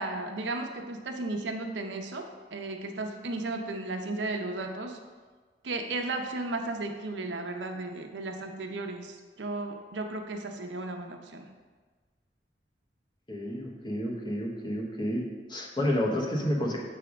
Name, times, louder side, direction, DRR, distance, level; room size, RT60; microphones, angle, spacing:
voice 1, 0.0-5.0 5.6-11.5, right 2 dB, 90° right, 4 dB, 0.7 m, -35 dB
voice 2, 13.3-15.2 15.5-16.8, left 1 dB, 25° left, -1 dB, 1.0 m, -30 dB
7.1 x 3.4 x 5.0 m, 1.4 s
head